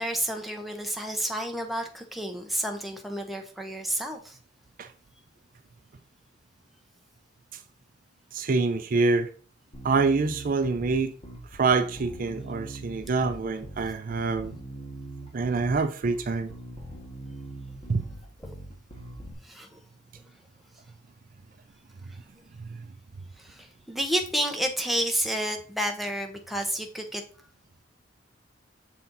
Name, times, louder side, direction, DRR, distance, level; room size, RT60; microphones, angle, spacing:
voice 1, 0.0-4.4 19.4-19.8 23.4-27.2, right 1 dB, ahead, 0.9 m, -30 dB
voice 2, 8.3-9.3 9.8-11.1 11.5-14.6 15.3-16.5 17.9-18.0 22.6-22.9, right 4 dB, 45° right, 0.4 m, -26 dB
Bass guitar, 9.7-19.3, right 1 dB, 35° left, 1.6 m, -42 dB
6.9 x 4.3 x 3.9 m
head